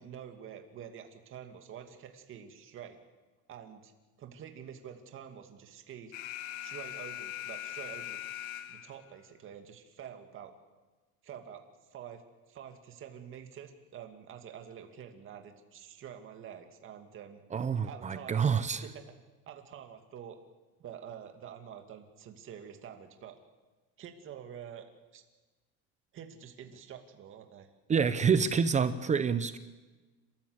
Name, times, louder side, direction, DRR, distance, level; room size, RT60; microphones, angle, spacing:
voice 1, 0.0-3.0 3.5-3.9 4.2-6.1 6.6-8.2 8.7-10.5 11.2-11.6 11.9-12.2 12.5-17.4 17.8-18.4 18.8-19.1 19.5-20.4 20.8-23.4 24.0-24.8 25.1-25.2 26.1-27.7, right 8 dB, 40° right, 5 dB, 2.3 m, -47 dB
Alarm, 6.1-9.1, left 12 dB, 75° left, 1.5 m, -41 dB
voice 2, 17.5-18.8 27.9-29.6, right 6 dB, 20° right, 12 dB, 0.8 m, -27 dB
29.5 x 14.0 x 8.0 m, 1.2 s
cardioid pair, 150°, 33 cm